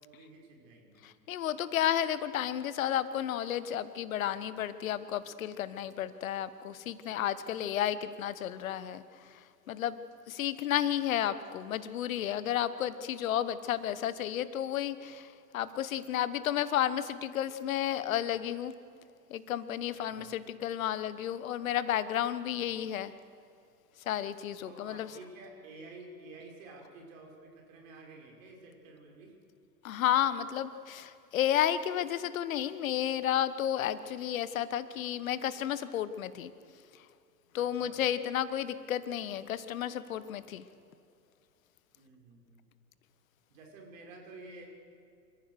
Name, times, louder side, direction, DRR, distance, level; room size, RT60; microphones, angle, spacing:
voice 1, 0.0-1.0 19.9-20.3 24.6-29.4 37.6-38.0 42.0-42.7 43.5-44.7, right 2 dB, 50° right, 1 dB, 5.7 m, -51 dB
voice 2, 1.0-9.0 9.3-9.4 9.7-10.0 10.3-18.7 19.3-23.1 24.0-25.1 29.8-36.5 37.5-40.6, left 11 dB, 55° left, 14 dB, 1.2 m, -32 dB
27.5 x 15.0 x 6.5 m, 2.5 s
figure-of-eight pair, 105°, 50 cm